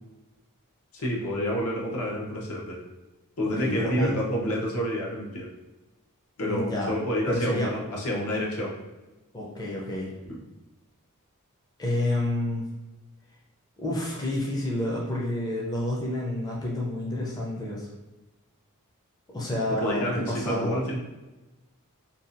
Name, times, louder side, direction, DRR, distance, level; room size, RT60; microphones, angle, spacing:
voice 1, 0.9-2.8 3.4-5.5 6.4-8.7 10.2-10.4 19.7-21.0, equal, 75° left, -2 dB, 0.7 m, -29 dB
voice 2, 3.6-4.1 6.5-6.9 7.3-7.8 9.3-10.1 11.8-12.6 13.8-17.9 19.3-20.8, left 1 dB, 15° left, -3 dB, 0.4 m, -29 dB
2.6 x 2.2 x 2.5 m, 1.1 s
head